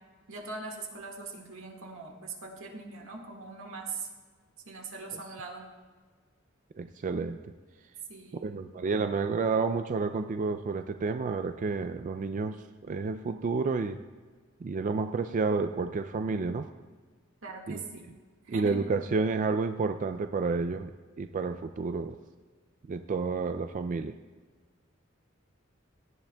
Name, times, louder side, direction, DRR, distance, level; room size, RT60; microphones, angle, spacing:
voice 1, 0.3-4.1 4.6-5.7 8.1-8.9 17.4-18.1 18.4-18.8, right 3 dB, 85° right, 1 dB, 1.7 m, -41 dB
voice 2, 6.8-7.4 8.4-14.0 14.6-16.7 17.7-17.8 18.5-20.9 21.2-22.2 22.9-24.1, right 4 dB, 40° right, 8 dB, 0.3 m, -30 dB
17.5 x 11.5 x 2.3 m, 1.5 s
head